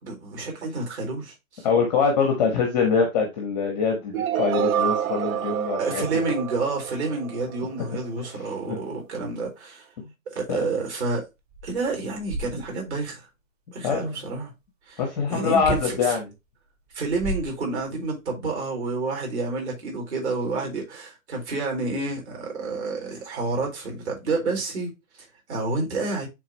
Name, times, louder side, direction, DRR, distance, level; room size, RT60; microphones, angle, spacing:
voice 1, 0.0-1.7 5.8-9.9 10.3-11.3 11.6-13.3 13.7-14.5 14.9-15.0 15.3-16.2 16.9-24.9 25.2-26.3, right 3 dB, 55° right, 4.4 m, -29 dB
voice 2, 1.6-6.0 8.2-8.3 8.7-8.8 10.0-10.1 10.5-10.6 13.8-14.1 15.0-16.3, left 5 dB, 5° left, 0.6 m, -24 dB
sound 1, 4.1-8.1, right 10 dB, 80° right, 0.5 m, -28 dB
sound 2, 11.1-11.2 11.5-13.0 15.6-16.0 16.9-18.1, right 1 dB, 30° right, 1.1 m, -34 dB
9.0 x 3.8 x 3.0 m
hypercardioid pair, 170°, 41 cm